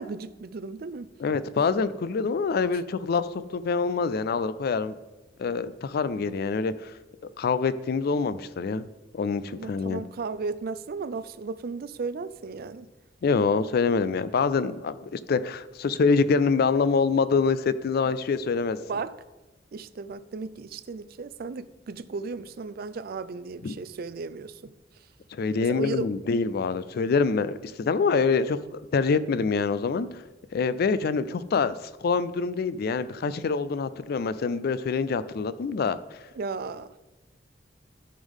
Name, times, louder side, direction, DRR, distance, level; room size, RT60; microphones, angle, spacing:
voice 1, 0.0-1.1 9.6-12.9 18.9-19.1 19.7-24.7 25.6-26.1 36.4-37.0, right 4 dB, 55° right, 0.4 m, -35 dB
voice 2, 1.2-4.9 5.4-6.9 7.4-8.8 9.1-10.0 13.2-18.8 23.6-23.7 25.3-30.2 30.5-36.0, left 5 dB, 55° left, 0.4 m, -25 dB
13.0 x 5.4 x 3.6 m
head